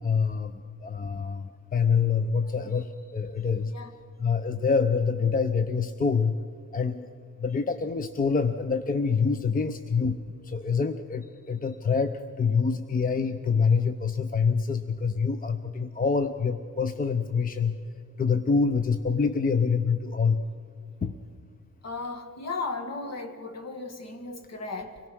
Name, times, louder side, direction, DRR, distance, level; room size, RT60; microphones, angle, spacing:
voice 1, 0.0-3.7 4.2-6.4 6.7-7.1 7.4-17.8 18.2-20.4 21.0-21.1, left 5 dB, 25° left, 10 dB, 0.7 m, -26 dB
voice 2, 21.8-25.0, left 3 dB, 50° left, 7 dB, 1.9 m, -35 dB
25.0 x 18.0 x 6.2 m, 2.4 s
cardioid pair, 110°, 32 cm